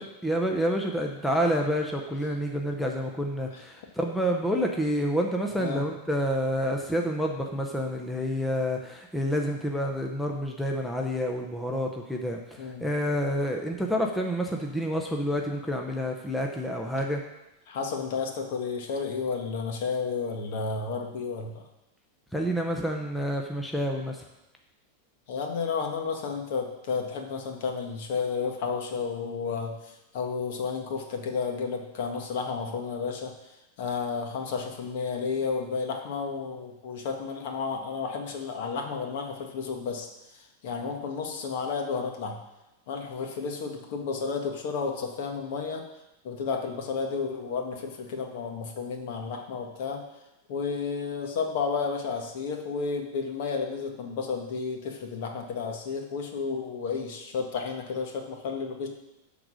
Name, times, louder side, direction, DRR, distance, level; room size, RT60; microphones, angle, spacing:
voice 1, 0.0-17.2 22.3-24.2, equal, ahead, 1 dB, 0.6 m, -28 dB
voice 2, 17.7-21.6 25.3-33.3 33.8-40.1 40.6-42.4 42.9-45.8 46.2-50.0 50.5-58.9, left 5 dB, 55° left, 3 dB, 1.5 m, -32 dB
11.0 x 3.9 x 6.3 m, 0.96 s
supercardioid pair, 160°, 0 cm